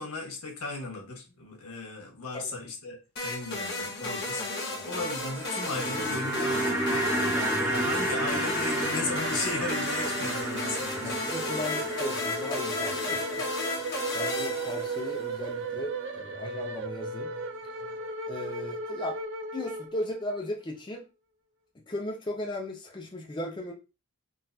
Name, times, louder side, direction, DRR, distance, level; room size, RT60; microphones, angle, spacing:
voice 1, 0.0-4.4 4.8-7.1 7.5-11.2 13.0-13.2, left 3 dB, 90° left, 1 dB, 1.4 m, -36 dB
sound 1, 3.2-15.3, left 2 dB, 50° left, 1.1 m, -34 dB
voice 2, 4.4-5.0 7.3-7.7 11.0-13.2 14.1-17.4 17.8-18.0 18.2-19.2 19.5-21.1 21.9-23.7, left 1 dB, 20° left, 1 dB, 0.5 m, -37 dB
sound 2, 5.2-20.5, right 3 dB, 55° right, 0.5 m, -37 dB
sound 3, 5.5-15.8 16.0-16.1, right 1 dB, 10° right, 0.9 m, -33 dB
3.8 x 2.5 x 2.7 m, 0.28 s
head